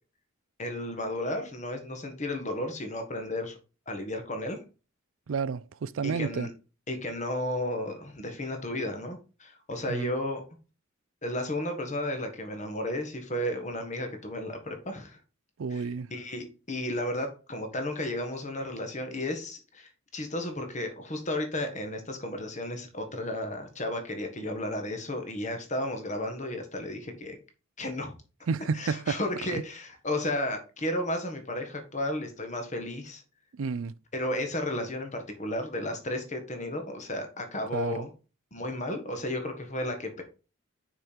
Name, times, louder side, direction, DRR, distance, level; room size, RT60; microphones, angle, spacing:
voice 1, 0.6-3.6 3.9-4.6 6.0-6.5 6.9-10.4 11.2-15.2 15.7-27.4 27.8-28.1 28.7-33.2 34.1-38.1 38.5-40.2, left 1 dB, 35° left, 1.6 m, -33 dB
voice 2, 5.3-6.5 9.9-10.1 15.6-16.1 28.5-29.2 29.5-29.6 33.5-33.9 37.7-38.1, right 5 dB, 70° right, 0.4 m, -31 dB
6.4 x 5.1 x 4.5 m
head